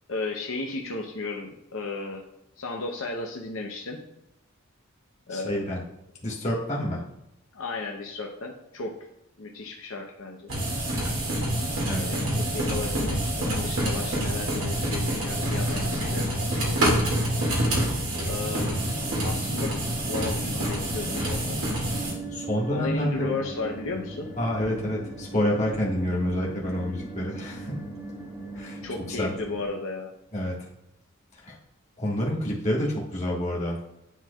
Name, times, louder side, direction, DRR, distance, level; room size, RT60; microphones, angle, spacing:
voice 1, 0.1-2.2 2.6-4.0 5.3-5.6 7.5-9.0 9.4-10.5 12.1-12.2 12.5-17.0 18.3-18.8 19.2-19.7 20.1-21.6 22.7-24.3 28.8-30.1, left 3 dB, 70° left, 1 dB, 0.7 m, -34 dB
voice 2, 5.3-5.8 6.2-7.0 11.9-12.0 22.3-23.3 24.4-27.8 28.5-28.8 29.1-29.3 30.3-30.5 31.3-31.6 32.0-33.8, left 1 dB, 30° left, -4 dB, 1.5 m, -28 dB
sound 1, 10.5-22.1, right 1 dB, 75° right, 2.0 m, -27 dB
sound 2, 18.7-29.7, right 2 dB, 15° right, 2.5 m, -39 dB
10.0 x 4.4 x 2.3 m, 0.85 s
head